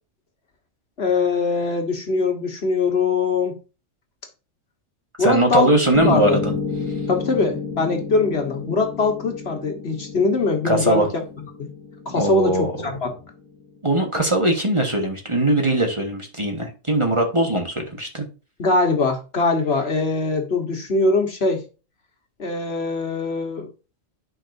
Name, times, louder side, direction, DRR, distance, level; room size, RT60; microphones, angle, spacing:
voice 1, 1.0-3.6 5.2-5.7 6.0-6.4 7.1-11.2 11.6-11.7 12.0-13.2 18.6-21.6 22.4-23.7, left 3 dB, 55° left, 1.6 m, -22 dB
voice 2, 5.2-6.5 10.6-11.1 12.1-12.9 13.8-18.2, right 1 dB, 25° right, 1.5 m, -20 dB
Piano, 5.9-14.0, left 5 dB, 80° left, 1.5 m, -31 dB
9.8 x 5.3 x 2.7 m
omnidirectional pair, 1.3 m